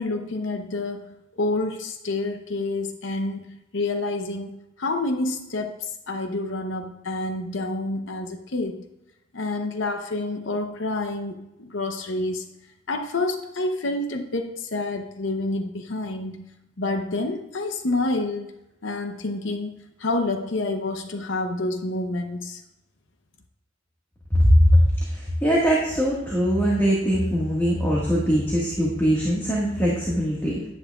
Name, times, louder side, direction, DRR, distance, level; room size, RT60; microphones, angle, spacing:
voice 1, 0.0-8.9 9.3-12.5 12.9-16.5 16.8-18.5 18.8-22.6, left 2 dB, 70° left, 6 dB, 0.8 m, -28 dB
voice 2, 24.3-30.7, equal, 10° left, -5 dB, 1.5 m, -21 dB
10.5 x 9.8 x 2.3 m, 0.91 s
head